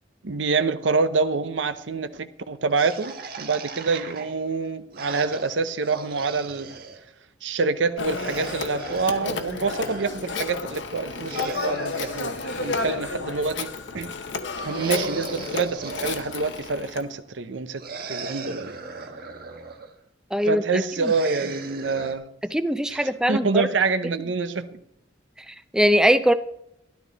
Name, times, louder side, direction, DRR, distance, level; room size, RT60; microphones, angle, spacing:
voice 1, 0.2-6.8 7.4-13.7 13.9-14.1 14.6-17.8 18.1-18.8 20.5-22.3 22.9-23.0 23.3-24.6, right 4 dB, 75° right, 0.8 m, -26 dB
sound 1, 2.7-7.0 8.0-10.2 11.1-13.4 14.6-16.8 17.8-19.9 21.0-22.1, right 4 dB, 50° right, 1.4 m, -38 dB
Telephone, 8.0-17.1, left 4 dB, 70° left, 1.1 m, -32 dB
voice 2, 20.3-21.1 22.5-23.7 25.5-26.3, equal, 5° right, 0.5 m, -22 dB
13.0 x 12.5 x 4.0 m
head